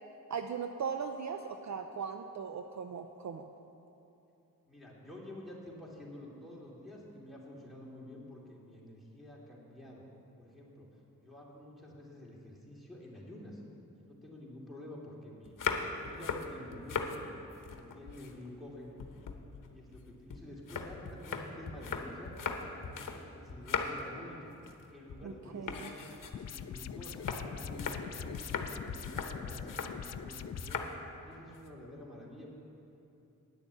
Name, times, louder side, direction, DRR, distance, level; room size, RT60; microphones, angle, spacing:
voice 1, 0.3-3.5 25.2-25.7, right 6 dB, 55° right, 6 dB, 0.6 m, -38 dB
voice 2, 4.7-10.0 10.4-10.9 11.2-13.6 13.9-15.5 16.0-17.3 17.7-19.0 19.6-22.3 23.0-24.5 24.9-25.9 26.3-30.8 31.2-32.5, left 1 dB, ahead, -4 dB, 2.7 m, -49 dB
sound 1, 15.4-17.2 17.5-18.7 19.0-23.2 23.5-24.1 24.5-24.8 25.1-25.3 25.7-30.0 30.6-31.0 31.3-31.7, left 5 dB, 70° left, 1.0 m, -39 dB
sound 2, 26.3-30.7, left 8 dB, 50° left, 0.4 m, -43 dB
10.0 x 7.0 x 8.1 m, 2.9 s
cardioid pair, 65°, 33 cm